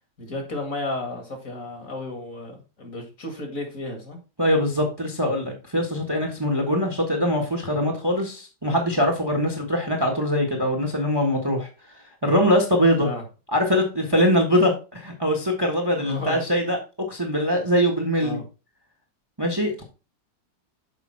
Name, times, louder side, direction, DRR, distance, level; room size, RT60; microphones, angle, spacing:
voice 1, 0.2-4.2 13.0-13.2 16.0-16.4 18.2-18.4, left 2 dB, 50° left, 3 dB, 2.4 m, -33 dB
voice 2, 4.4-11.7 12.2-13.1 13.5-16.8 17.1-18.4 19.4-19.8, equal, 15° right, 3 dB, 1.3 m, -22 dB
7.0 x 5.2 x 4.5 m, 0.32 s
omnidirectional pair, 1.9 m